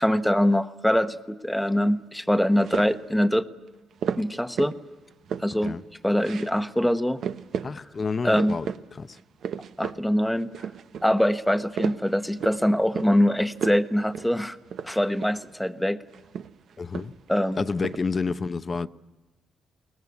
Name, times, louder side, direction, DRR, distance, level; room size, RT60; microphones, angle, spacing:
voice 1, 0.0-3.5 4.2-4.7 5.4-5.7 6.0-7.2 8.2-8.6 9.8-10.7 11.0-14.6 14.8-16.0 17.3-17.6, equal, 5° left, 1.1 m, -23 dB
sound 1, 2.6-3.1 4.0-4.8 5.1-5.8 6.2-6.5 6.8-6.9 7.2-7.7 8.1-8.8 9.1-10.0 10.4-11.1 11.5-12.6 12.9-13.2 13.5-13.9 14.1-14.3 14.7-15.5 16.1-17.3 17.6-18.0, right 8 dB, 65° right, 0.8 m, -33 dB
voice 2, 7.6-9.2 16.8-17.1 17.5-18.9, left 4 dB, 35° left, 0.7 m, -29 dB
22.0 x 19.0 x 9.7 m
cardioid pair, 90°, 0 cm